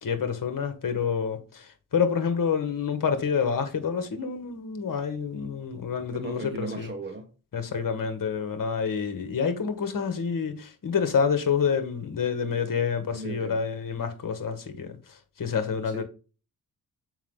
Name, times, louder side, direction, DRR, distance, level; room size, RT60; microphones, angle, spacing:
voice 1, 0.0-6.9 7.5-16.0, left 6 dB, 50° left, 1.7 m, -28 dB
voice 2, 6.1-7.3 13.1-13.6 15.9-16.0, right 2 dB, 25° right, 1.3 m, -36 dB
7.3 x 5.3 x 3.8 m
cardioid pair, 90°, 40 cm